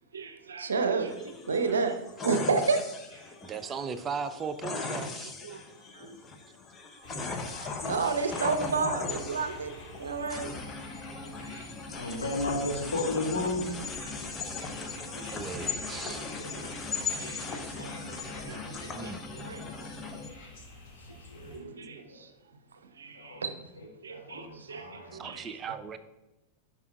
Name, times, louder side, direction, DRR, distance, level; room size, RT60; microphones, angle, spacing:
voice 1, 0.1-2.0 2.2-2.8 3.1-3.2 5.4-5.6 5.9-6.1 7.2-7.3 7.6-10.5 11.2-11.7 12.0-12.1 14.0-14.4 15.1-19.6 21.5-22.3 23.0-23.5 24.0-25.6, right 4 dB, 70° right, 0.6 m, -33 dB
sound 1, 1.1-20.3, left 4 dB, 20° left, 0.7 m, -38 dB
voice 2, 3.4-5.3 14.6-14.7 15.3-16.2 18.9-19.3 25.1-26.0, right 5 dB, 25° right, 0.4 m, -37 dB
sound 2, 7.0-21.6, left 2 dB, 40° left, 1.9 m, -47 dB
voice 3, 11.9-13.8 15.7-16.1 16.5-17.1 17.7-19.1 19.5-19.8 20.0-20.6 21.0-22.2 23.1-23.4 23.8-25.7, left 2 dB, 70° left, 1.7 m, -36 dB
10.5 x 5.4 x 2.3 m
figure-of-eight pair, 90°, 0 cm